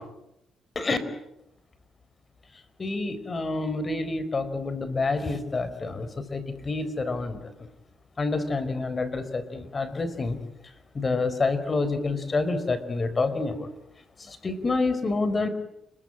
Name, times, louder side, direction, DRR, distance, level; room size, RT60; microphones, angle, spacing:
voice 1, 2.8-7.7 8.2-10.4 10.9-13.7 14.3-15.5, left 3 dB, 30° left, 12 dB, 4.6 m, -28 dB
30.0 x 22.0 x 9.0 m, 0.86 s
cardioid pair, 90°, 0 cm